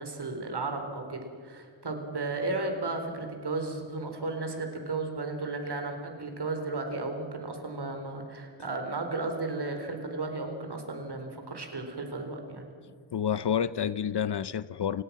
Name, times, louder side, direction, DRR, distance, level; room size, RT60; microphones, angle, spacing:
voice 1, 0.0-12.7, right 3 dB, 50° right, 4 dB, 4.4 m, -34 dB
voice 2, 13.1-15.0, left 8 dB, 55° left, 17 dB, 0.7 m, -29 dB
29.5 x 17.5 x 5.9 m, 2.2 s
wide cardioid pair, 120°, 50 cm